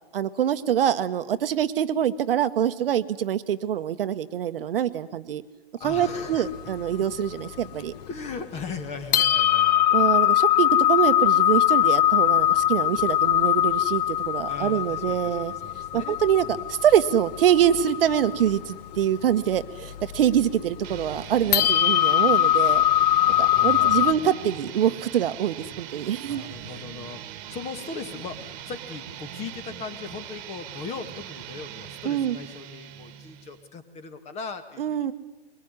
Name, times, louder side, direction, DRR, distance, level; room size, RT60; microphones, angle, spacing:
voice 1, 0.1-5.4 5.8-7.9 9.9-15.5 15.9-22.8 23.4-26.4 32.0-32.4 34.8-35.1, right 10 dB, 55° right, 11 dB, 1.3 m, -24 dB
sound 1, 5.8-8.2 8.7-8.8 9.1-24.1, left 12 dB, 40° left, 0.9 m, -22 dB
voice 2, 5.8-6.5 8.1-10.0 14.5-16.6 23.0-24.2 26.3-27.2 27.5-35.1, left 5 dB, 20° left, 10 dB, 1.8 m, -39 dB
sound 2, 20.8-33.7, right 10 dB, 30° right, 1.8 m, -41 dB
22.5 x 21.0 x 9.8 m, 1.0 s
hypercardioid pair, 140°, 33 cm